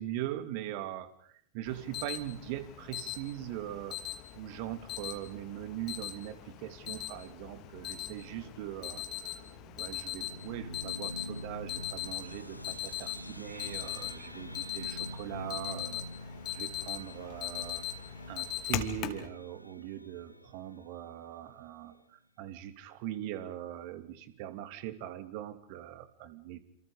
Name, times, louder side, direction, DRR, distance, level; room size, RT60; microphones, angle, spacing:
voice 1, 0.0-9.4 9.7-16.0 16.5-17.8 18.3-26.6, right 13 dB, 45° right, 11 dB, 3.0 m, -41 dB
Alarm, 1.7-19.3, left 12 dB, 35° left, 2.9 m, -40 dB
sound 1, 7.2-22.0, right 2 dB, 80° right, 7.8 m, -59 dB
sound 2, 10.2-21.0, left 1 dB, 90° left, 1.3 m, -46 dB
29.0 x 28.0 x 5.1 m, 0.62 s
figure-of-eight pair, 95°, 0 cm